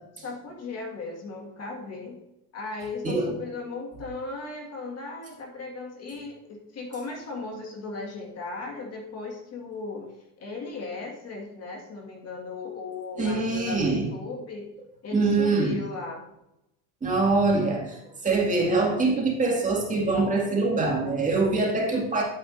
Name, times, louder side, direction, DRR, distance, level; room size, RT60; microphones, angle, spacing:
voice 1, 0.2-2.2 2.5-10.1 10.4-14.7 15.0-16.2, left 3 dB, 35° left, 1 dB, 1.8 m, -37 dB
voice 2, 3.0-3.4 13.2-14.1 15.1-15.8 17.0-22.2, right 3 dB, 20° right, -2 dB, 2.1 m, -24 dB
10.5 x 8.9 x 2.6 m, 0.88 s
cardioid pair, 135°, 41 cm